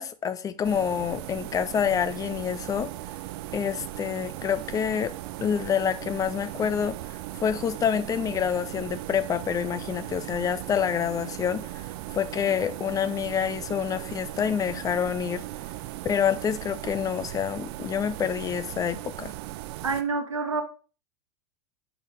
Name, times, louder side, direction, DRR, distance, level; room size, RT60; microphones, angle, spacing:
voice 1, 0.0-2.9 3.5-5.1 5.4-7.0 7.4-11.9 12.1-15.5 16.0-19.3, left 8 dB, 20° left, 0.4 m, -27 dB
sound 1, 0.6-20.0, right 16 dB, 50° right, 0.6 m, -38 dB
voice 2, 19.8-20.6, right 4 dB, 80° right, 1.3 m, -27 dB
5.6 x 3.9 x 4.6 m
figure-of-eight pair, 90°, 16 cm